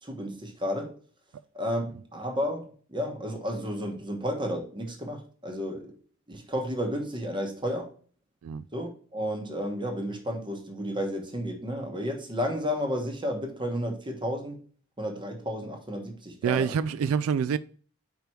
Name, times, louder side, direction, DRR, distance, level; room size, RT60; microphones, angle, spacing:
voice 1, 0.0-0.9 1.5-5.9 6.3-7.9 8.7-14.6 15.0-16.7, equal, 25° right, 1.2 m, -32 dB
voice 2, 16.4-17.6, right 7 dB, 90° right, 0.3 m, -26 dB
5.1 x 4.6 x 4.4 m
head